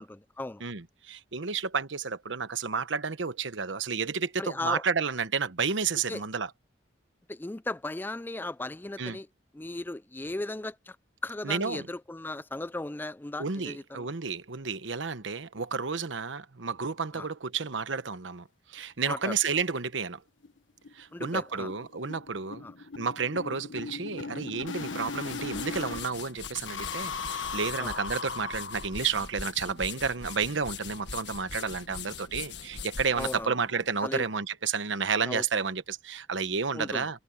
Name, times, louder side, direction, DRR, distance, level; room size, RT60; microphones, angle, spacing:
voice 1, 0.0-0.6 4.4-4.8 6.1-6.2 7.3-9.3 9.5-11.0 11.2-14.1 17.1-17.3 19.1-19.3 21.1-21.7 22.6-22.7 27.8-28.0 33.1-33.6 34.0-34.2 35.2-35.4 36.7-37.1, left 2 dB, 10° left, 0.4 m, -36 dB
voice 2, 0.6-6.5 9.0-9.2 11.4-11.9 13.4-20.2 20.9-22.7 23.0-37.2, right 5 dB, 80° right, 1.1 m, -31 dB
sound 1, 19.2-19.3 19.6-19.7 20.0-20.1 20.4-20.6 20.8-26.1 26.4-29.2, left 5 dB, 85° left, 1.4 m, -38 dB
sound 2, 25.0-34.3, left 6 dB, 65° left, 1.7 m, -42 dB
head